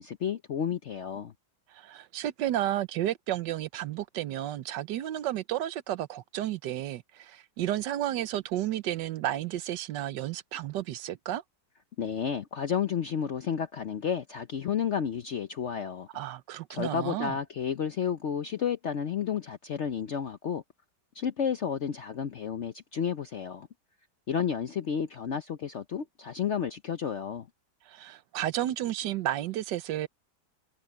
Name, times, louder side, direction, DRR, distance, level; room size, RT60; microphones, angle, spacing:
voice 1, 0.0-1.3 12.0-16.1 16.7-20.6 21.1-23.7 24.3-27.5, left 7 dB, 55° left, 0.9 m, -31 dB
voice 2, 1.7-11.4 16.1-17.4 27.9-30.1, right 13 dB, 85° right, 1.4 m, -32 dB
omnidirectional pair, 1.8 m